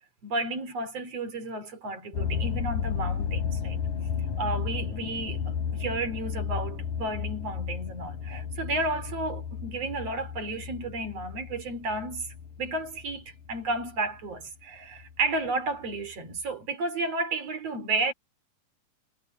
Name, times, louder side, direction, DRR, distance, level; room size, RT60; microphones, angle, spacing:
voice 1, 0.2-3.8 4.4-5.4 5.7-12.3 12.6-18.1, right 2 dB, 45° right, 3.8 m, -32 dB
sound 1, 2.1-14.4 15.0-15.4 16.0-16.1 16.4-16.5, left 7 dB, 70° left, 4.3 m, -33 dB
omnidirectional pair, 4.1 m